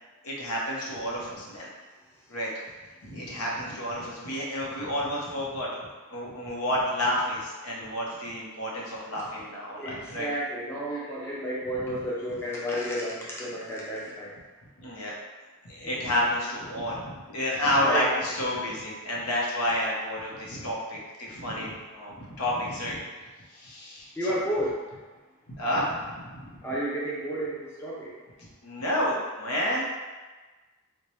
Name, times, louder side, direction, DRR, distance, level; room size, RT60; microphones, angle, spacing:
voice 1, 0.2-1.7 2.3-2.5 3.0-5.8 6.1-10.3 10.9-11.4 11.8-12.0 14.8-15.2 15.6-23.0 23.5-24.4 25.5-26.7 28.4-29.8, left 1 dB, 75° left, -4 dB, 0.9 m, -30 dB
voice 2, 9.8-14.3 15.8-16.0 17.8-18.1 24.2-24.8 26.6-28.1, equal, 10° left, -6 dB, 0.5 m, -31 dB
4.5 x 2.2 x 3.0 m, 1.3 s
head